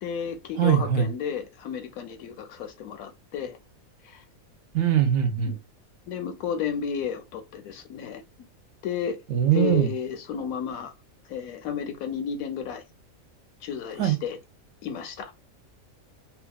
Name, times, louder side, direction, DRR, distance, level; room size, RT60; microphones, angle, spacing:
voice 1, 0.0-3.6 4.0-4.2 5.5-5.6 6.1-8.2 8.8-9.2 9.5-10.9 11.3-12.8 13.6-14.4 14.8-15.3, left 7 dB, 80° left, 1.1 m, -32 dB
voice 2, 0.6-1.1 4.7-5.5 9.3-9.9 14.0-14.2, right 9 dB, 65° right, 0.8 m, -21 dB
2.8 x 2.4 x 2.2 m
omnidirectional pair, 1.5 m